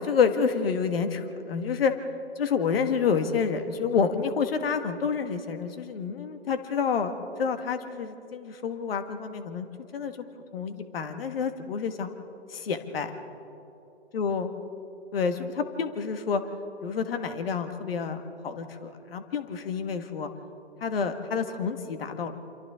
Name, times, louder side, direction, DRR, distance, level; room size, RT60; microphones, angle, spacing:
voice 1, 0.0-1.9 2.4-7.1 7.4-9.7 9.9-10.1 10.5-12.1 12.5-13.2 14.1-14.5 15.1-16.4 16.8-20.3 20.8-22.4, left 6 dB, 55° left, 8 dB, 1.9 m, -28 dB
28.5 x 27.0 x 3.8 m, 2.9 s
hypercardioid pair, 135°, 34 cm